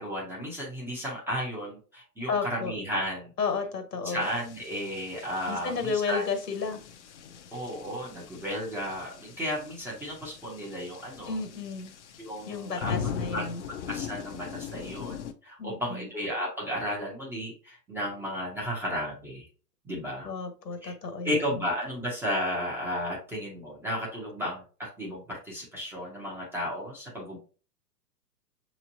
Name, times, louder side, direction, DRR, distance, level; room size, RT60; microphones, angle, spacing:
voice 1, 0.0-3.3 4.0-6.2 7.5-11.4 12.2-19.5 19.8-20.3 20.8-20.9 21.2-27.4, equal, 5° right, -5 dB, 0.6 m, -34 dB
voice 2, 2.3-2.7 3.4-4.3 5.5-6.8 11.3-11.9 12.4-13.6 15.6-16.1 20.2-21.4, left 5 dB, 75° left, 6 dB, 1.4 m, -32 dB
sound 1, 4.2-15.3, left 7 dB, 45° left, 0.6 m, -40 dB
6.3 x 3.0 x 2.7 m, 0.37 s
figure-of-eight pair, 115°, 49 cm